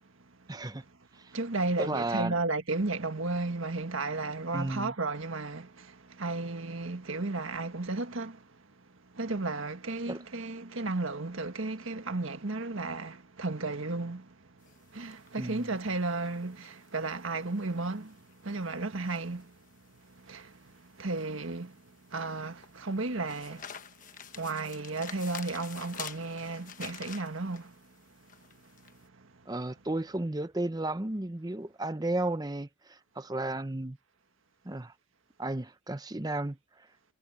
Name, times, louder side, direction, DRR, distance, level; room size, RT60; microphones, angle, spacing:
voice 1, 0.5-0.8 1.2-1.3 1.8-2.3 4.5-4.9 10.1-10.2 15.4-15.7 29.5-34.0 34.6-34.9 35.4-36.6, right 2 dB, 20° right, 0.7 m, -33 dB
voice 2, 1.3-8.5 9.1-14.3 14.9-19.6 20.1-21.8 22.1-23.7 24.3-27.7, right 3 dB, 80° right, 1.7 m, -34 dB
sound 1, 14.6-29.0, left 8 dB, 40° left, 1.2 m, -49 dB
head